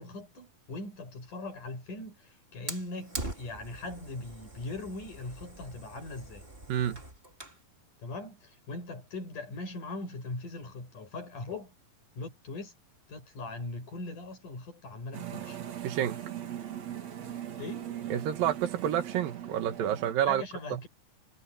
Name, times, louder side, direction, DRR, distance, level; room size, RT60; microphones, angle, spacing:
voice 1, 0.0-6.5 8.0-11.7 12.2-12.7 13.1-15.6 17.6-17.9 20.3-20.9, left 2 dB, 60° left, 8.2 m, -40 dB
Fire, 2.7-7.6, right 1 dB, 15° right, 3.8 m, -43 dB
voice 2, 6.7-7.0 15.8-16.2 18.1-20.4 20.7-20.8, right 10 dB, 75° right, 3.2 m, -29 dB
sound 1, 15.1-20.1, right 10 dB, 55° right, 3.2 m, -39 dB
omnidirectional pair, 4.0 m